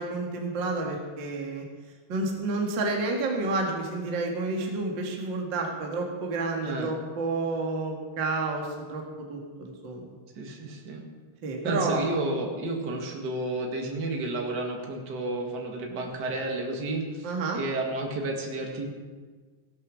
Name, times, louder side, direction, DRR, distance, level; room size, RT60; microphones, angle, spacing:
voice 1, 0.0-1.6 2.1-10.1 11.4-12.1 17.2-17.6, right 3 dB, 45° right, 1 dB, 1.6 m, -30 dB
voice 2, 10.4-11.0 11.6-17.3 17.5-18.9, right 2 dB, 75° right, 1 dB, 0.9 m, -31 dB
17.0 x 10.5 x 6.4 m, 1.5 s
omnidirectional pair, 5.1 m